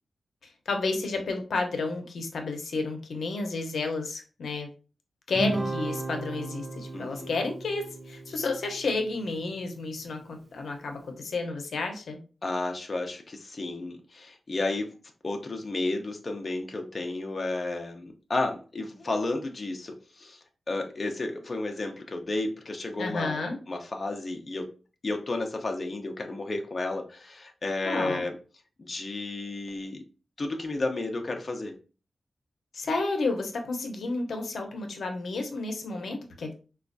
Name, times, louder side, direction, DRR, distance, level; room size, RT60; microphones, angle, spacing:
voice 1, 0.7-4.7 5.3-12.2 23.0-23.6 27.8-28.2 32.7-36.5, left 3 dB, 85° left, 4 dB, 0.6 m, -31 dB
Guitar, 5.3-10.0, right 2 dB, 35° right, 0.5 m, -35 dB
voice 2, 6.9-7.3 12.4-14.9 15.2-20.4 20.7-24.7 25.0-28.4 28.8-30.0 30.4-31.7, left 2 dB, 40° left, 3 dB, 0.5 m, -32 dB
4.2 x 2.3 x 2.5 m, 0.35 s
wide cardioid pair, 135°, 0 cm